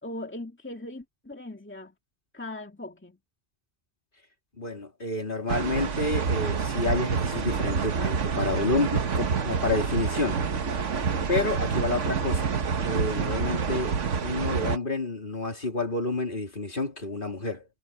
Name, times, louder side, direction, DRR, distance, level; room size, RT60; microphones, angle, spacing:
voice 1, 0.0-2.0 2.3-3.2, left 1 dB, 10° left, 2.1 m, -39 dB
voice 2, 4.6-10.4 11.3-12.5 12.8-13.9 14.2-17.6, left 2 dB, 45° left, 3.7 m, -29 dB
sound 1, 5.5-14.8, right 5 dB, 90° right, 1.6 m, -27 dB
omnidirectional pair, 1.2 m